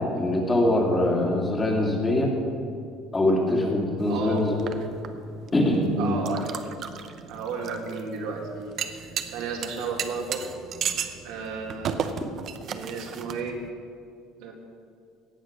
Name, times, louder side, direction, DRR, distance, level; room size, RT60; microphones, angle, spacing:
voice 1, 0.0-2.3 3.1-4.7 5.5-6.2, left 1 dB, 20° left, 0 dB, 2.2 m, -23 dB
sound 1, 4.0-13.7, right 7 dB, 45° right, 0.8 m, -35 dB
voice 2, 4.1-4.4 6.0-6.6 7.3-8.7 9.2-10.4 11.2-11.9 12.6-13.6 14.4-14.5, right 5 dB, 80° right, 0 dB, 2.3 m, -33 dB
17.5 x 6.5 x 6.4 m, 2.4 s
cardioid pair, 130°, 0 cm